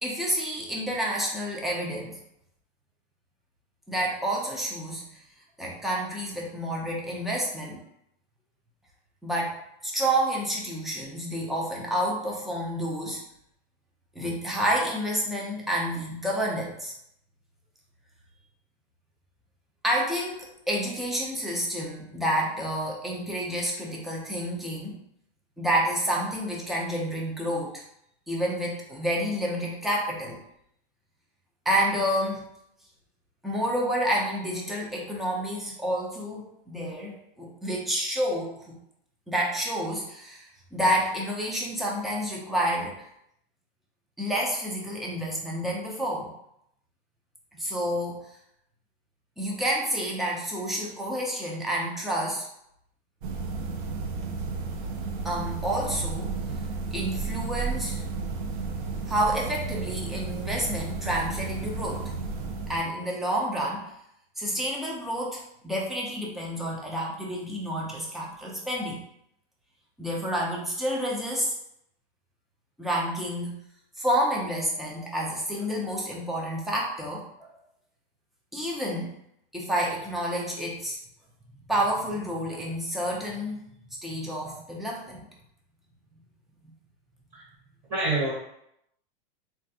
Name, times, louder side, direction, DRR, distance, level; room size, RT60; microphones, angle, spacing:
voice 1, 0.0-2.2 3.9-5.0 5.6-7.8 9.2-13.2 14.2-16.9 19.8-25.0 25.6-27.7 28.3-30.4 31.7-32.5 33.4-38.8 39.3-43.0 44.2-46.3 47.5-48.2 49.4-52.5 55.2-56.4 56.9-58.0 59.1-62.1 62.7-63.9 64.4-69.0 70.0-71.5 72.8-73.5 74.0-77.5 78.5-79.2 79.5-81.0 81.7-83.6 84.0-85.3, equal, ahead, -3 dB, 0.3 m, -29 dB
sound 1, 53.2-62.8, right 4 dB, 55° right, 0.5 m, -33 dB
voice 2, 87.9-88.3, right 2 dB, 25° right, -7 dB, 1.0 m, -26 dB
3.2 x 2.4 x 2.6 m, 0.75 s
hypercardioid pair, 130°, 29 cm